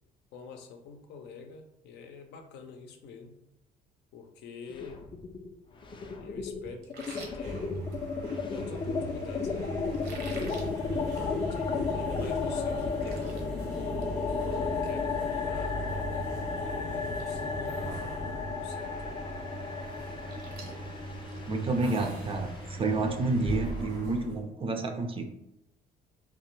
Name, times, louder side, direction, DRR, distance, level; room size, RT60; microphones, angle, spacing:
voice 1, 0.3-3.4 4.1-5.1 6.2-7.8 8.4-11.2 11.5-13.4 14.3-15.8 16.6-18.9, left 5 dB, 80° left, 4 dB, 0.5 m, -46 dB
sound 1, 4.7-5.5 5.8-23.8, left 5 dB, 30° left, 0.4 m, -34 dB
sound 2, 6.8-8.4 9.9-10.7 11.1-11.3 11.7-11.8 12.3-12.4 12.6-13.4 13.8-14.1 14.4-14.5 16.4-16.5 16.9-17.2 17.5-18.0 18.4-18.5 19.9-22.2, right 3 dB, 60° right, 0.8 m, -48 dB
sound 3, 7.3-24.4, right 1 dB, 85° right, 1.5 m, -39 dB
voice 2, 21.5-25.3, right 3 dB, 30° right, 5 dB, 0.4 m, -29 dB
3.3 x 2.1 x 3.1 m, 0.87 s
cardioid pair, 100°, 18 cm